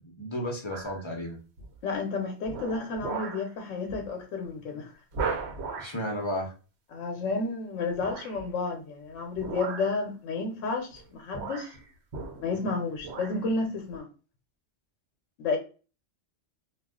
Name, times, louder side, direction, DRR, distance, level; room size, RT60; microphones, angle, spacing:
voice 1, 0.0-1.4 5.8-6.5, equal, 35° left, 0.5 m, -33 dB
sound 1, 0.7-1.0 1.6-1.9 2.4-3.5 3.9-4.1 4.4-4.5 5.1-6.0 8.0-8.4 9.3-10.0 10.9-11.0 11.3-12.7 13.0-13.4 13.9-14.0, right 4 dB, 65° right, 0.9 m, -36 dB
voice 2, 1.8-4.9 6.9-11.7 12.4-14.1 15.4-15.6, left 3 dB, 85° left, 0.9 m, -31 dB
2.3 x 2.3 x 3.5 m
omnidirectional pair, 1.3 m